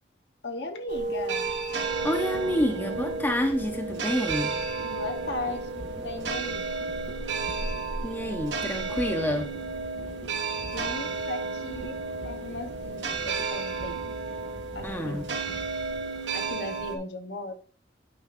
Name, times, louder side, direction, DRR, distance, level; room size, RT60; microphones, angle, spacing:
voice 1, 0.4-1.4 4.8-6.6 10.7-14.1 14.7-15.6 16.3-17.5, left 2 dB, 75° left, 4 dB, 1.1 m, -37 dB
sound 1, 0.9-17.0, right 3 dB, 90° right, 0.9 m, -32 dB
sound 2, 1.9-16.1, right 2 dB, 35° right, 0.6 m, -45 dB
voice 2, 2.0-4.6 8.0-9.5 14.8-15.2, equal, 10° left, 3 dB, 0.8 m, -28 dB
9.0 x 5.8 x 2.6 m, 0.42 s
head